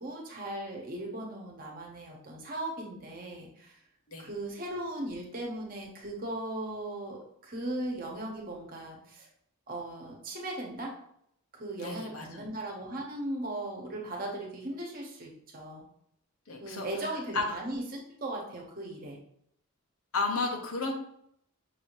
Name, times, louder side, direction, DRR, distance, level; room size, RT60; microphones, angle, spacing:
voice 1, 0.0-3.7 4.2-9.3 9.7-10.9 11.5-15.8 16.6-19.2, right 1 dB, 40° right, -1 dB, 1.1 m, -38 dB
voice 2, 11.8-12.4 16.5-16.9 17.3-17.4 20.1-20.9, left 3 dB, 70° left, 2 dB, 0.9 m, -32 dB
5.9 x 2.8 x 3.1 m, 0.70 s
head